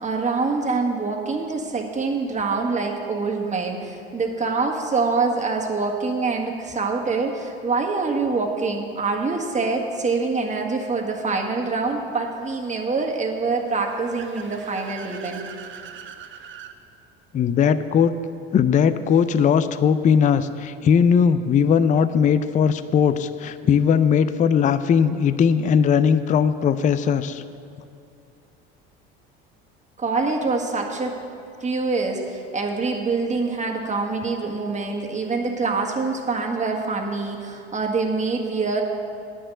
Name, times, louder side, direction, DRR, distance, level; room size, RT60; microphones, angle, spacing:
voice 1, 0.0-15.4 30.0-31.1 31.6-38.8, right 4 dB, 25° right, 0 dB, 1.6 m, -25 dB
Car / Accelerating revving vroom, 13.5-16.8, right 8 dB, 40° right, 0.9 m, -41 dB
voice 2, 17.3-18.1 18.5-27.4, left 7 dB, 25° left, 13 dB, 0.4 m, -19 dB
10.0 x 6.3 x 7.8 m, 2.6 s
hypercardioid pair, 85°, 30 cm